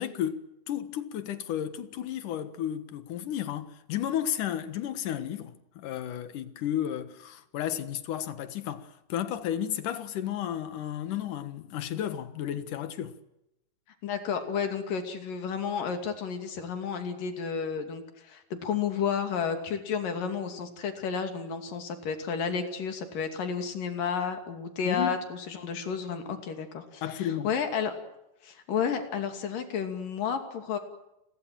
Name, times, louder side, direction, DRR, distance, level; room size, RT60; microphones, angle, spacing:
voice 1, 0.0-13.1 24.9-25.2 27.0-27.5, left 10 dB, 75° left, 2.9 m, -33 dB
voice 2, 14.0-27.9 28.4-30.8, left 6 dB, 90° left, 4.3 m, -32 dB
30.0 x 21.5 x 7.7 m
omnidirectional pair, 3.7 m